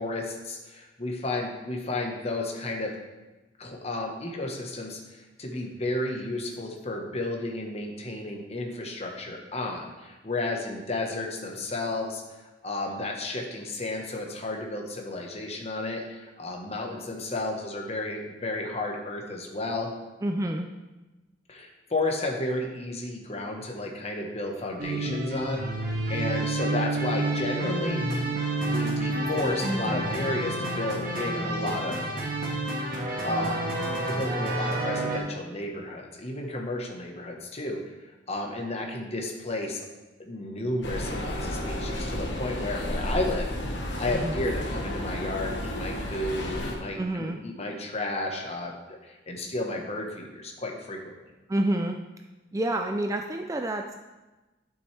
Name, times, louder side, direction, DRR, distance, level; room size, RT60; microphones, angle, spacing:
voice 1, 0.0-3.0 3.6-12.2 12.6-19.9 21.5-25.6 26.1-28.0 28.6-32.0 33.2-33.7 34.0-39.8 40.2-43.5 44.0-51.1, left 2 dB, 35° left, 1 dB, 1.2 m, -32 dB
voice 2, 20.2-20.7 44.1-44.4 47.0-47.4 51.5-52.0 52.5-54.0, right 1 dB, 20° right, 4 dB, 0.4 m, -28 dB
sound 1, 24.8-35.2, right 2 dB, 50° right, 1.6 m, -29 dB
sound 2, 40.8-46.7, left 1 dB, 90° left, 1.3 m, -32 dB
11.0 x 6.2 x 3.4 m, 1.1 s
head